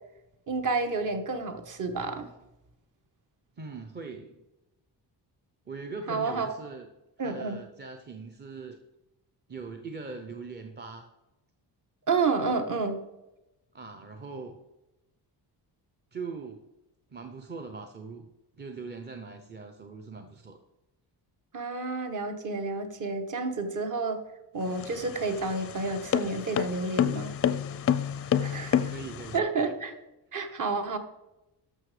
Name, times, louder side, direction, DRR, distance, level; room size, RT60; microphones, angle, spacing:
voice 1, 0.5-2.3 6.1-6.5 7.2-7.6 12.1-13.0 21.5-24.2 24.5-27.4 28.4-28.9 29.3-29.9 30.3-31.0, right 3 dB, 45° right, 7 dB, 1.2 m, -30 dB
voice 2, 3.6-4.4 5.7-6.9 7.2-8.8 9.5-11.1 13.7-14.6 16.1-16.6 17.1-18.3 18.6-20.6 28.2-29.4, right 4 dB, 25° right, 5 dB, 0.6 m, -41 dB
sound 1, 24.6-29.4, left 9 dB, 35° left, 0.4 m, -28 dB
12.5 x 6.7 x 4.9 m, 0.97 s
wide cardioid pair, 175°, 42 cm